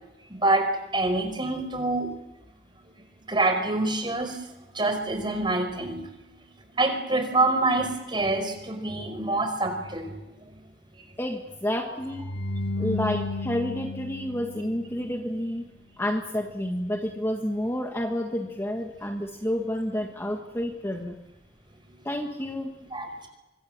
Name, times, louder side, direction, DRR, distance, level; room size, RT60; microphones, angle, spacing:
voice 1, 0.3-0.7 0.9-2.1 3.3-4.4 4.7-6.0 6.8-10.1 22.9-23.1, right 2 dB, 25° right, 6 dB, 5.0 m, -26 dB
voice 2, 11.2-12.3 12.8-15.7 16.0-21.1 22.0-22.7, equal, 15° left, 3 dB, 1.6 m, -30 dB
sound 1, 12.0-15.2, left 2 dB, 65° left, 2.2 m, -33 dB
25.5 x 22.5 x 7.5 m, 0.99 s
head